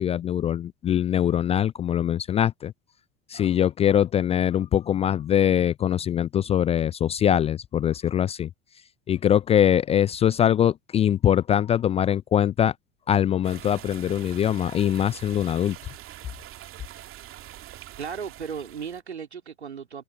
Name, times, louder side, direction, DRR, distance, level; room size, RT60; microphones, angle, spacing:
voice 1, 0.0-2.7 3.3-8.5 9.1-12.7 13.1-15.8, left 10 dB, 20° left, 0.3 m, -22 dB
sound 1, 13.4-19.0, right 13 dB, 40° right, 2.9 m, -44 dB
voice 2, 18.0-20.0, right 6 dB, 80° right, 3.6 m, -35 dB
figure-of-eight pair, 75°, 33 cm